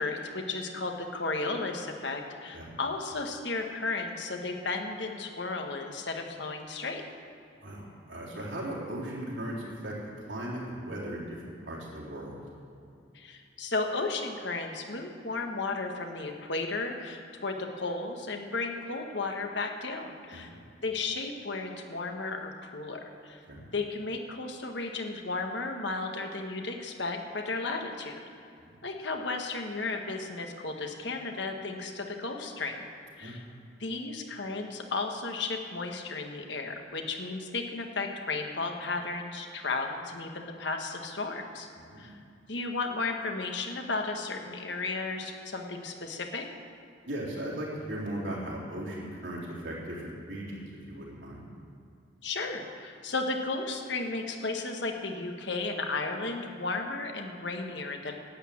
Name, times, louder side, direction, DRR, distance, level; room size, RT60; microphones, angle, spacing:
voice 1, 0.0-7.0 13.1-20.6 20.8-23.4 23.7-28.2 28.8-32.9 33.2-33.4 33.8-41.7 42.0-42.2 42.5-46.4 52.2-58.2, left 3 dB, 65° left, 3 dB, 1.4 m, -34 dB
voice 2, 8.1-9.9 10.3-12.4 20.3-20.6 23.5-23.6 28.6-28.8 33.2-33.4 41.9-42.1 47.0-51.5, right 1 dB, 75° right, -5 dB, 3.7 m, -37 dB
12.0 x 8.5 x 8.6 m, 2.5 s
head